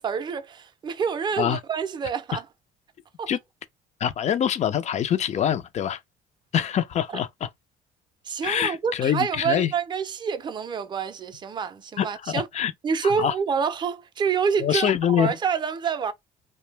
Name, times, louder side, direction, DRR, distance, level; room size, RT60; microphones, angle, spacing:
voice 1, 0.0-2.4 3.2-3.3 8.2-12.5 12.8-16.1, right 6 dB, 25° right, 0.4 m, -27 dB
voice 2, 4.0-6.0 6.5-7.5 8.4-9.7 12.0-12.7 13.0-13.3 14.6-15.3, left 9 dB, 40° left, 0.4 m, -24 dB
2.6 x 2.0 x 3.2 m
cardioid pair, 110°, 17 cm